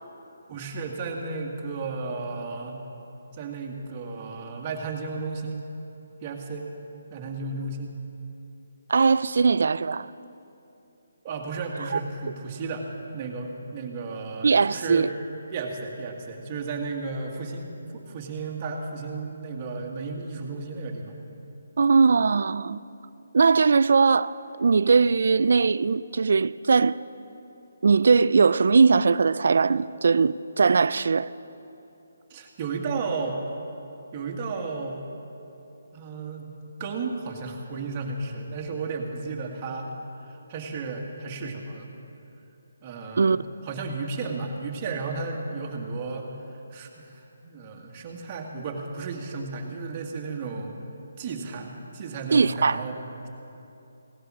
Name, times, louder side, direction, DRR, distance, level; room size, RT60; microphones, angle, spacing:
voice 1, 0.5-2.8 3.3-5.6 6.2-6.7 7.1-7.9 11.2-12.9 13.1-15.1 15.5-21.2 32.3-33.4 34.1-35.0 35.9-36.5 36.8-39.9 40.2-41.9 42.8-46.3 46.7-50.7 51.2-53.0, right 4 dB, 25° right, 1.7 m, -33 dB
voice 2, 8.9-10.1 11.9-12.0 14.4-15.1 21.8-22.8 23.3-27.0 27.8-31.3 43.2-43.4 52.3-52.8, right 4 dB, 65° right, 0.3 m, -20 dB
17.0 x 11.5 x 6.1 m
hypercardioid pair, 160°, 0 cm